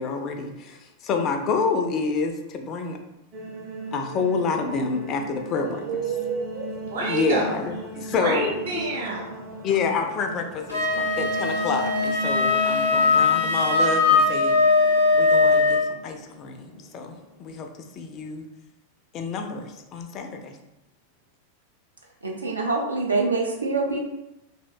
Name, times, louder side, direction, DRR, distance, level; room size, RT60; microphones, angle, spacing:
voice 1, 0.0-3.0 3.9-6.0 7.1-8.5 9.6-14.6 15.1-17.7 17.9-18.5 19.1-20.6, left 4 dB, 35° left, 4 dB, 0.3 m, -28 dB
sound 1, 3.3-17.5, right 1 dB, 25° right, 0.6 m, -37 dB
voice 2, 5.5-7.5 8.1-9.4, right 3 dB, 60° right, -3 dB, 0.8 m, -29 dB
Wind instrument woodwind instrument, 10.7-15.9, left 3 dB, 90° left, 0.7 m, -20 dB
voice 3, 22.2-24.0, right 3 dB, 80° right, 0 dB, 0.3 m, -25 dB
2.6 x 2.1 x 2.4 m, 0.91 s
figure-of-eight pair, 90°, 0 cm